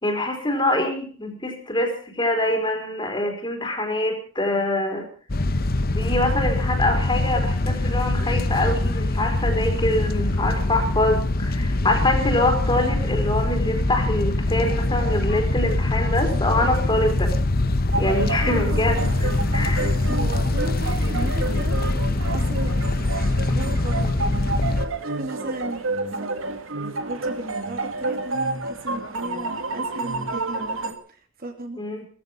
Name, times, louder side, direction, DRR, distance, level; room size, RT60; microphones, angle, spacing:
voice 1, 0.0-5.1 5.9-17.3 18.0-19.9 31.7-32.1, left 1 dB, 25° left, 3 dB, 4.2 m, -25 dB
sound 1, 5.3-24.9, left 2 dB, 50° left, 1.0 m, -23 dB
sound 2, 17.9-30.9, right 3 dB, 85° right, 1.9 m, -30 dB
voice 2, 18.6-19.0 20.1-21.8 22.2-24.9 25.1-25.8 26.1-31.8, right 1 dB, 50° right, 4 dB, 2.9 m, -36 dB
18.0 x 15.0 x 5.4 m, 0.43 s
head